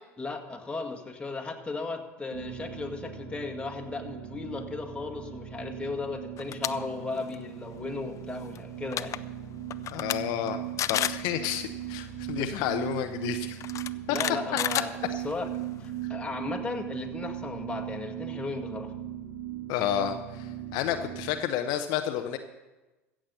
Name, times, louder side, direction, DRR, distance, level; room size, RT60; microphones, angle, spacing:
voice 1, 0.2-9.2 14.1-15.0 15.2-15.5 15.8-18.9, left 3 dB, 15° left, 3 dB, 1.8 m, -36 dB
sound 1, 2.3-21.3, right 12 dB, 85° right, 2.1 m, -38 dB
sound 2, 6.4-6.7 7.1-7.4 8.6-8.7 8.9-9.2 9.7-10.2 10.5-10.6 10.8-11.2 12.4-12.5 13.6-15.5, left 11 dB, 40° left, 0.5 m, -30 dB
voice 2, 9.9-10.6 10.9-13.6 14.1-14.2 19.7-22.4, left 10 dB, 60° left, 7 dB, 0.8 m, -30 dB
15.5 x 7.6 x 6.7 m, 1.1 s
hypercardioid pair, 80°, 8 cm